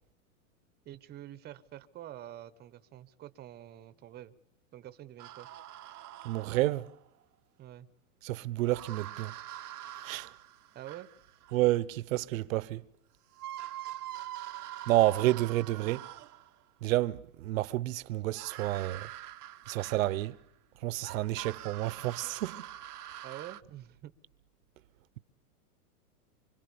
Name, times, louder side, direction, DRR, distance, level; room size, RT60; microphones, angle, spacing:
voice 1, 0.8-4.3 4.7-5.5 7.6-7.9 10.7-11.1 23.2-24.1, right 12 dB, 20° right, 1.0 m, -47 dB
sound 1, 5.2-7.1 8.6-11.6 12.9-13.0 13.3-16.6 18.3-20.4 21.0-23.6, right 13 dB, 85° right, 1.0 m, -44 dB
voice 2, 6.2-6.9 8.2-9.3 10.0-10.3 11.5-12.8 14.9-16.1 16.8-19.1 19.7-20.4 20.8-22.6, right 16 dB, 60° right, 1.0 m, -30 dB
25.5 x 25.0 x 7.0 m
hypercardioid pair, 135°, 45 cm